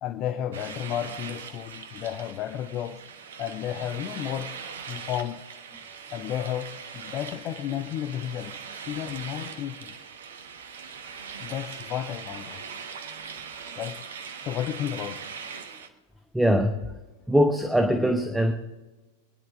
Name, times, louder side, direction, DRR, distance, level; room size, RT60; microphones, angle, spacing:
voice 1, 0.0-3.0 3.4-4.6 4.9-5.4 6.1-9.9 11.4-12.7 13.8-15.3, left 11 dB, 35° left, 0.7 m, -33 dB
sound 1, 0.5-15.9, right 6 dB, 65° right, 1.2 m, -41 dB
voice 2, 16.3-16.9 17.3-18.5, equal, 5° right, 1.0 m, -22 dB
24.0 x 10.5 x 3.8 m
figure-of-eight pair, 90°, 0 cm